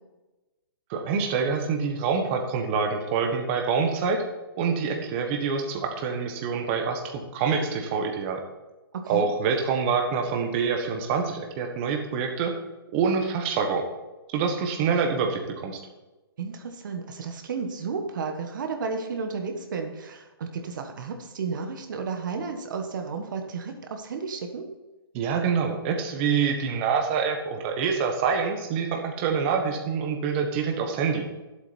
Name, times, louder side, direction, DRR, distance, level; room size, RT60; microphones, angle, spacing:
voice 1, 0.9-4.2 4.6-8.4 9.1-12.5 12.9-13.8 14.3-15.8 25.1-31.2, right 5 dB, 30° right, 3 dB, 1.4 m, -26 dB
voice 2, 8.9-9.3 16.4-24.6, right 5 dB, 55° right, 5 dB, 1.4 m, -32 dB
11.0 x 8.2 x 4.4 m, 1.1 s
hypercardioid pair, 150°, 12 cm